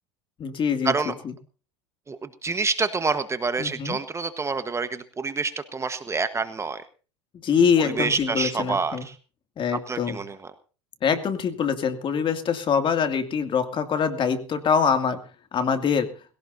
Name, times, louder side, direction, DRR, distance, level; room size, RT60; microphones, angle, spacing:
voice 1, 0.4-1.3 3.6-4.0 7.4-9.0 9.6-10.2 11.0-15.2 15.5-16.1, left 6 dB, 35° left, 7 dB, 2.4 m, -24 dB
voice 2, 2.1-6.8 8.0-9.0 9.9-10.3, right 4 dB, 20° right, 10 dB, 1.2 m, -27 dB
21.5 x 17.0 x 2.7 m, 0.36 s
hypercardioid pair, 90°, 15 cm